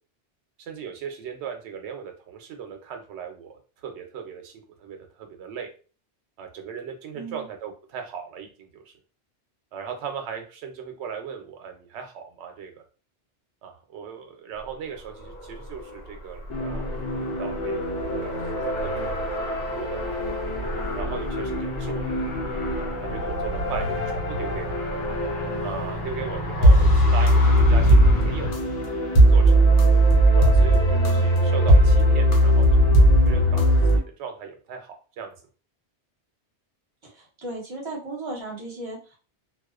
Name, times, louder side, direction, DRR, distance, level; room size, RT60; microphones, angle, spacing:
voice 1, 0.6-5.7 6.4-8.9 9.7-12.8 13.6-16.9 17.2-17.8 18.2-19.4 19.7-20.4 20.9-22.4 22.8-24.8 25.6-28.5 29.3-29.8 30.4-35.3, right 7 dB, 75° right, 4 dB, 0.8 m, -38 dB
voice 2, 7.1-7.5 30.8-31.2 37.0-39.2, right 2 dB, 30° right, -4 dB, 0.8 m, -36 dB
Car, 14.5-28.5, equal, 55° left, 1.1 m, -33 dB
sound 1, 16.5-34.0, right 1 dB, 80° left, 0.9 m, -20 dB
2.3 x 2.3 x 2.3 m, 0.37 s
omnidirectional pair, 1.2 m